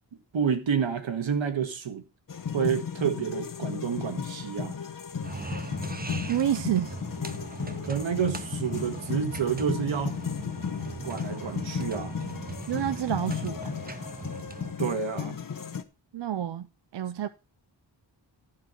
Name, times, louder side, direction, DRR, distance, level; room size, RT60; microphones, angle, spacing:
voice 1, 0.3-2.0 2.5-4.8 7.8-10.2 11.0-12.2 14.8-15.4, right 7 dB, 85° right, 1.7 m, -29 dB
sound 1, 2.3-15.8, left 7 dB, 45° left, 0.9 m, -35 dB
sound 2, 5.2-14.7, right 3 dB, 20° right, 0.8 m, -39 dB
voice 2, 6.2-7.0 12.7-13.7 16.1-16.7 16.9-17.3, right 10 dB, 65° right, 0.6 m, -28 dB
14.0 x 4.7 x 5.7 m
wide cardioid pair, 105°, 45 cm